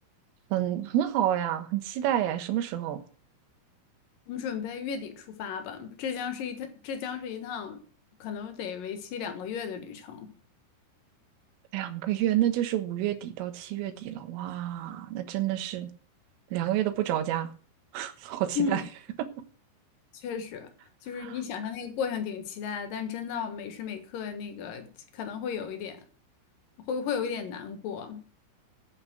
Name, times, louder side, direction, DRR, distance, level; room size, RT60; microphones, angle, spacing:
voice 1, 0.5-3.0 11.7-15.9 16.5-17.5 17.9-18.8, right 12 dB, 85° right, 3.8 m, -29 dB
voice 2, 4.3-7.9 8.2-10.3 18.6-18.8 20.1-20.7 21.0-26.0 26.8-28.3, left 6 dB, 65° left, 2.2 m, -34 dB
8.8 x 8.3 x 7.8 m
omnidirectional pair, 5.8 m